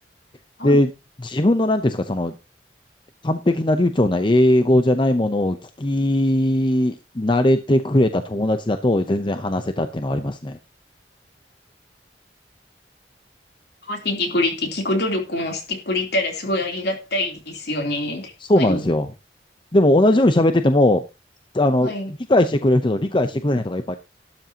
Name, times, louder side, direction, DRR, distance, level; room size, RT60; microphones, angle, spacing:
voice 1, 1.2-2.3 3.2-10.6 18.4-19.1 19.7-21.0 21.5-24.0, left 1 dB, 30° left, 0.7 m, -19 dB
voice 2, 13.9-18.8 21.8-22.1, left 2 dB, 65° left, 3.3 m, -25 dB
12.5 x 12.0 x 2.9 m
head